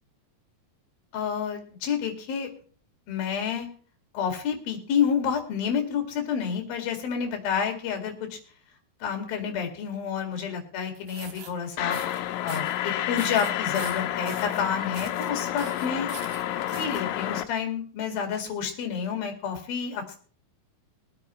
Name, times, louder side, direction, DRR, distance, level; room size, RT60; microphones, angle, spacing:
voice 1, 1.1-2.5 3.1-3.7 4.1-8.4 9.0-12.0 12.4-16.1 16.8-20.2, left 7 dB, 65° left, 4 dB, 3.8 m, -29 dB
sound 1, 10.9-11.5 11.9-12.2 12.5-12.8 13.2-14.6 14.9-15.3 15.6-17.0, right 6 dB, 60° right, 1.8 m, -42 dB
sound 2, 11.8-17.4, left 12 dB, 85° left, 2.9 m, -30 dB
22.0 x 8.8 x 3.1 m, 0.43 s
omnidirectional pair, 4.7 m